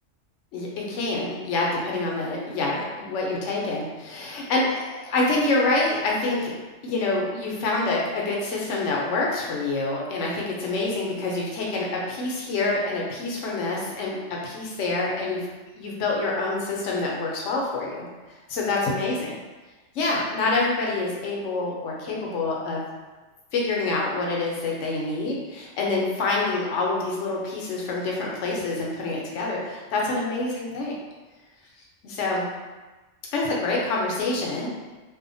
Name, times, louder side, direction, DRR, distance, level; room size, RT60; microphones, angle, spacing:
voice 1, 0.5-6.5 6.8-15.5 15.8-18.1 18.5-19.4 19.9-22.8 23.5-31.0 32.0-32.5 33.3-34.7, left 2 dB, 70° left, -3 dB, 0.9 m, -26 dB
2.6 x 2.1 x 2.6 m, 1.2 s
omnidirectional pair, 1.3 m